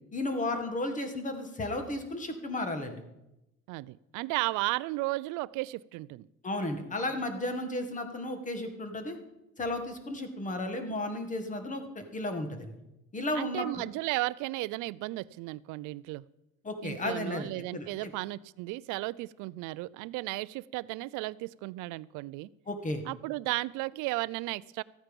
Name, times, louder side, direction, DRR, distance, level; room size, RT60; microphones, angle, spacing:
voice 1, 0.1-3.0 6.4-9.2 9.6-12.7 13.1-13.7 16.6-18.1 22.7-23.0, left 2 dB, 25° left, 7 dB, 1.7 m, -34 dB
voice 2, 3.7-6.3 13.3-16.2 16.8-22.5 23.1-24.8, right 20 dB, 75° right, 20 dB, 0.5 m, -34 dB
14.0 x 8.9 x 5.3 m, 0.91 s
cardioid pair, 115°, 31 cm